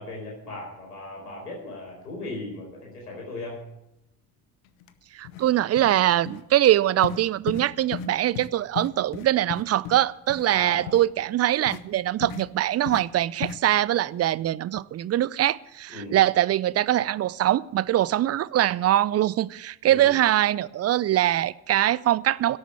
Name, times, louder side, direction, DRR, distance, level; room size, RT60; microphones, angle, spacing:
voice 1, 0.0-3.6 10.5-10.9 15.9-16.2 19.8-20.1, left 2 dB, 90° left, 4.5 m, -37 dB
sound 1, 4.8-4.9 5.2-5.5 5.8-6.0 6.3-6.4 7.0-7.2 7.5-7.7 7.9-8.1 8.4-8.5 8.8-10.0 10.3-10.4 10.9-11.0 11.7-11.8 12.2-12.4 12.9-13.0 13.4-13.6, left 9 dB, 70° left, 1.0 m, -34 dB
voice 2, 5.1-22.6, right 13 dB, 35° right, 0.5 m, -23 dB
12.0 x 8.6 x 8.4 m
figure-of-eight pair, 55°, 45 cm